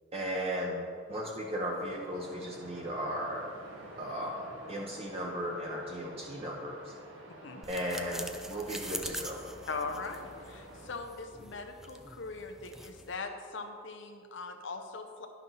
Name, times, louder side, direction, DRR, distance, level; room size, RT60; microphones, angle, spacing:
voice 1, 0.1-0.8 1.1-3.4 4.0-6.9 7.7-9.4, equal, 30° right, -2 dB, 0.8 m, -36 dB
Waves surf, 1.0-10.9, right 1 dB, 85° right, 1.4 m, -50 dB
sound 1, 7.6-13.2, equal, ahead, 0.4 m, -44 dB
voice 2, 9.7-15.3, left 4 dB, 65° left, 5 dB, 0.7 m, -40 dB
11.0 x 5.8 x 5.5 m, 2.2 s
head